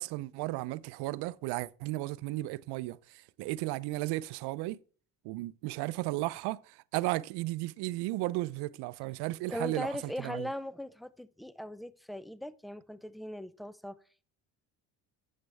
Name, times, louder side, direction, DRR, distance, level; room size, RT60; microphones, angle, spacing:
voice 1, 0.0-4.8 5.2-10.5, right 18 dB, 75° right, 0.6 m, -34 dB
voice 2, 9.5-14.0, left 1 dB, ahead, 0.4 m, -39 dB
9.4 x 7.5 x 3.3 m
supercardioid pair, 90°, 41 cm